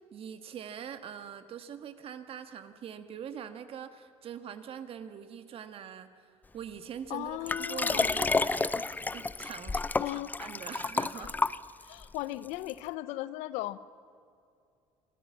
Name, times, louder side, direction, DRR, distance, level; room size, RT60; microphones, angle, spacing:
voice 1, 0.1-6.1 6.5-8.9 9.1-11.3 11.8-11.9, right 8 dB, 55° right, 10 dB, 1.5 m, -43 dB
voice 2, 7.1-8.1 10.0-10.3 11.1-11.3 11.8-13.8, left 16 dB, 90° left, 16 dB, 0.7 m, -37 dB
Liquid, 7.5-12.0 12.7-12.8, left 3 dB, 15° left, 0.5 m, -30 dB
26.0 x 13.5 x 7.3 m, 2.5 s
cardioid pair, 100°, 12 cm